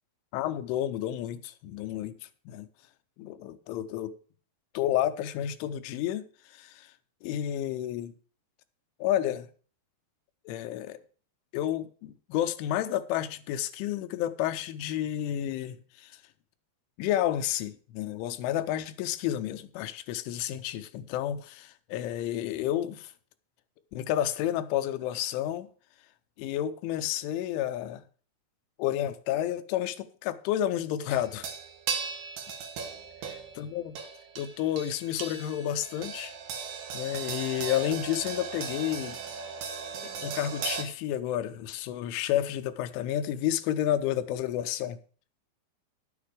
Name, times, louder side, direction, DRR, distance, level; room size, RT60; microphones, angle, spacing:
voice 1, 0.3-2.7 3.2-4.2 4.7-6.2 6.5-6.9 7.2-8.1 9.0-9.5 10.5-11.0 11.5-16.2 17.0-23.1 23.9-25.7 26.4-28.0 28.8-31.5 33.6-34.0 34.4-36.3 36.9-39.2 40.2-45.0, left 11 dB, 85° left, 3.3 m, -30 dB
sound 1, 31.1-40.8, right 6 dB, 60° right, 2.6 m, -37 dB
11.0 x 8.8 x 4.8 m
omnidirectional pair, 5.4 m